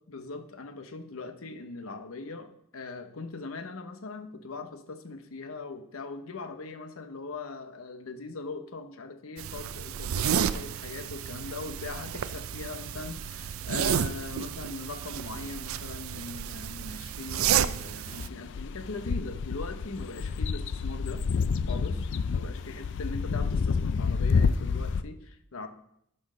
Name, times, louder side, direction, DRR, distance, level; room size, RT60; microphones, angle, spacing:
voice 1, 0.1-21.4 21.7-25.7, left 3 dB, 80° left, 8 dB, 0.9 m, -40 dB
sound 1, 9.4-18.3, right 8 dB, 75° right, 0.4 m, -31 dB
sound 2, 18.1-25.0, left 5 dB, 60° left, 0.4 m, -29 dB
12.0 x 4.4 x 4.9 m, 0.74 s
head